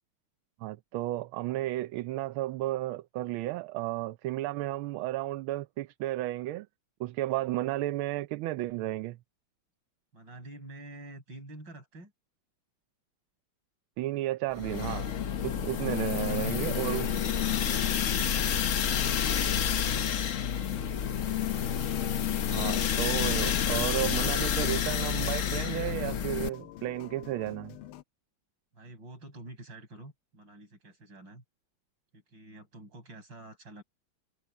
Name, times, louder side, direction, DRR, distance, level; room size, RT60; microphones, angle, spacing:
voice 1, 0.6-6.7 7.0-9.2 14.0-15.1 15.4-17.1 22.5-27.8, right 16 dB, 80° right, 1.4 m, -33 dB
voice 2, 10.1-12.1 15.9-21.2 28.7-31.4 32.1-33.8, right 2 dB, 60° right, 6.7 m, -49 dB
sound 1, 14.6-26.5, left 8 dB, 55° left, 0.9 m, -29 dB
sound 2, 14.9-28.0, left 13 dB, 90° left, 1.7 m, -47 dB
omnidirectional pair, 2.3 m